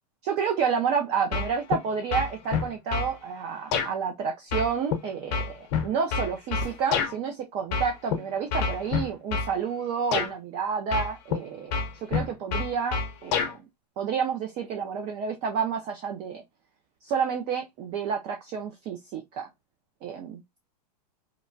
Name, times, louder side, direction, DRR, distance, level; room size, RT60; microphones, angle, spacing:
voice 1, 0.2-13.6 14.0-16.4 17.0-19.5 20.0-20.4, right 6 dB, 30° right, 0.4 m, -30 dB
sound 1, 1.3-1.8 2.1-3.1 3.7-3.9 4.5-7.1 7.7-8.2 8.5-9.5 10.1-10.3 10.9-11.4 11.7-13.5, left 5 dB, 45° left, 0.7 m, -27 dB
sound 2, 6.6-7.7 11.6-11.7, right 1 dB, 80° right, 1.4 m, -45 dB
2.9 x 2.1 x 2.5 m
supercardioid pair, 140°, 21 cm